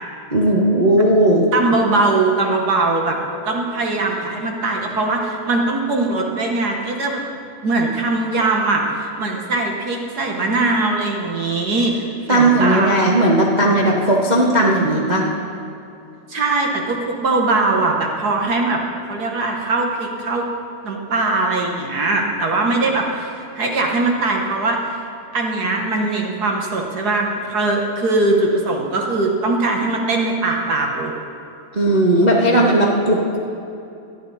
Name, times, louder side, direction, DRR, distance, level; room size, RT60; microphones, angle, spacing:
voice 1, 0.3-1.4 12.3-15.2 31.7-33.4, right 1 dB, 75° right, -3 dB, 0.4 m, -16 dB
voice 2, 1.5-3.2 3.4-7.2 7.6-12.0 12.3-13.1 16.3-18.8 19.1-20.4 20.8-24.8 25.3-31.1, right 3 dB, 50° right, 1 dB, 1.2 m, -21 dB
18.0 x 12.0 x 4.2 m, 2.7 s
omnidirectional pair, 3.3 m